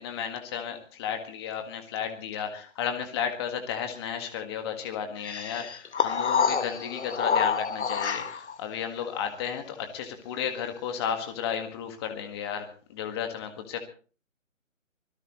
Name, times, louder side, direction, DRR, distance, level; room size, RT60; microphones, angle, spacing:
voice 1, 0.0-13.8, left 8 dB, 20° left, 6 dB, 1.7 m, -33 dB
sound 1, 5.2-8.6, left 6 dB, 55° left, 1.4 m, -27 dB
25.0 x 17.5 x 3.1 m, 0.40 s
figure-of-eight pair, 155°, 39 cm